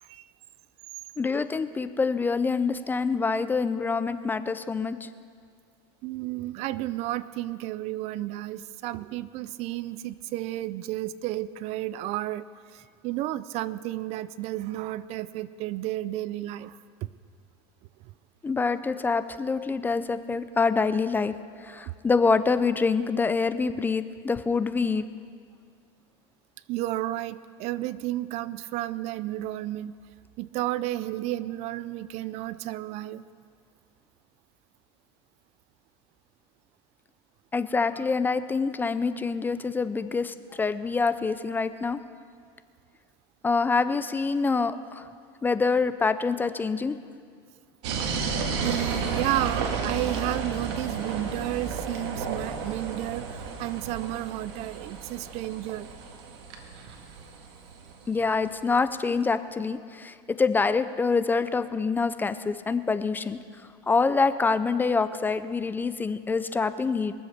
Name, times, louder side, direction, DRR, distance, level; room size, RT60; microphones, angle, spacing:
voice 1, 1.2-5.1 18.4-21.3 21.6-25.0 37.5-42.0 43.4-45.1 45.4-47.0 58.1-63.4 63.9-67.1, left 4 dB, 15° left, 13 dB, 0.4 m, -26 dB
voice 2, 6.0-12.4 12.7-17.1 18.7-18.8 21.7-21.9 26.7-29.9 30.4-33.2 48.6-55.9, right 15 dB, 50° right, 17 dB, 0.5 m, -32 dB
sound 1, 47.8-58.5, right 5 dB, 80° right, 1.9 m, -33 dB
sound 2, 49.9-53.6, left 2 dB, 30° left, 3.4 m, -51 dB
22.5 x 7.8 x 6.6 m, 2.2 s
supercardioid pair, 130°, 14 cm